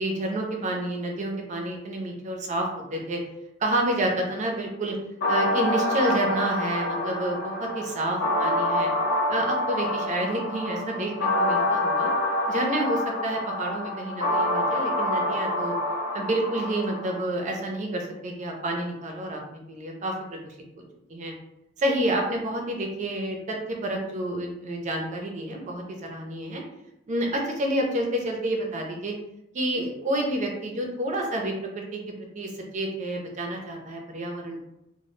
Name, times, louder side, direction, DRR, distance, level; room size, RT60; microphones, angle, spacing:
voice 1, 0.0-3.2 3.6-5.0 5.3-8.9 9.3-12.1 12.5-15.7 16.1-20.8 21.1-21.3 21.8-26.6 27.1-29.1 29.5-32.0 32.3-34.6, right 1 dB, 35° right, 2 dB, 0.4 m, -29 dB
sound 1, 5.2-17.2, left 1 dB, 60° left, 0.8 m, -27 dB
2.0 x 2.0 x 3.0 m, 0.85 s
head